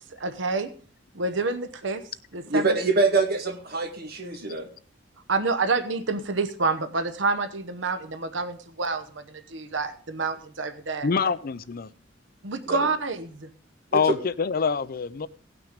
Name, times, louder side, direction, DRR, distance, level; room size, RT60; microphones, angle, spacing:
voice 1, 0.2-0.7 1.1-2.0 2.3-2.8 5.3-11.1 12.4-13.5, right 3 dB, 70° right, 10 dB, 1.0 m, -28 dB
voice 2, 2.5-4.7 12.7-12.8 13.9-14.0, right 3 dB, 55° right, 4 dB, 2.0 m, -24 dB
voice 3, 11.0-11.9 13.9-15.3, left 5 dB, 50° left, 17 dB, 0.5 m, -25 dB
17.5 x 6.1 x 5.1 m, 0.43 s
head